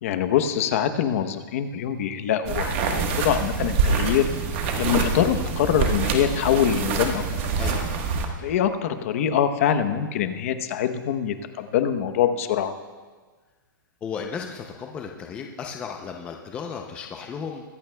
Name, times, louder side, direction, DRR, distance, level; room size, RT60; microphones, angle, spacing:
voice 1, 0.0-4.3 4.8-7.3 8.4-12.7, left 9 dB, 40° left, 9 dB, 0.9 m, -24 dB
sound 1, 2.5-8.3, right 5 dB, 30° right, 1.3 m, -25 dB
voice 2, 14.0-17.6, left 6 dB, 10° left, 2 dB, 0.5 m, -34 dB
23.0 x 15.0 x 2.3 m, 1.4 s
hypercardioid pair, 170°, 11 cm